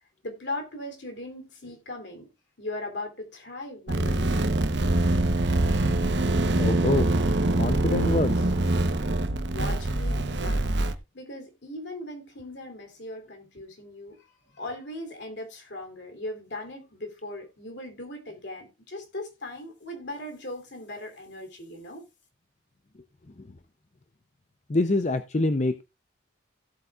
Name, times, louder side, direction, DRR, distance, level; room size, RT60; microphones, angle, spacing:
voice 1, 0.2-2.3 2.6-4.4 9.4-10.6 11.1-22.0, left 1 dB, 60° left, 3.1 m, -39 dB
sound 1, 3.9-10.9, right 2 dB, 60° right, 0.9 m, -24 dB
voice 2, 6.6-7.1 7.5-8.5 23.4-23.5 24.7-25.8, left 2 dB, 35° left, 0.5 m, -25 dB
16.5 x 8.1 x 2.4 m
head